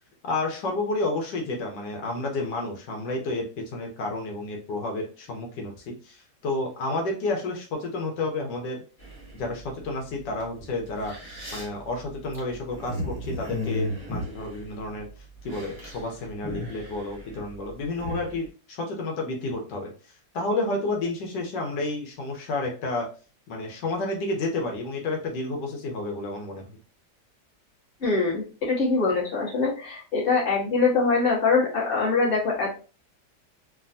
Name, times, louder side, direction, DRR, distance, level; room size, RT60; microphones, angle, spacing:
voice 1, 0.2-8.8 9.3-11.1 11.5-15.1 15.4-23.1 23.5-26.7, left 2 dB, 85° left, 1 dB, 1.4 m, -30 dB
sound 1, 9.0-9.6 10.4-10.5 10.9-15.1 15.4-16.0 16.3-18.4, left 1 dB, 10° left, 0.8 m, -35 dB
voice 2, 28.0-32.7, left 4 dB, 35° left, -5 dB, 1.3 m, -23 dB
3.3 x 2.3 x 2.5 m, 0.37 s
omnidirectional pair, 1.9 m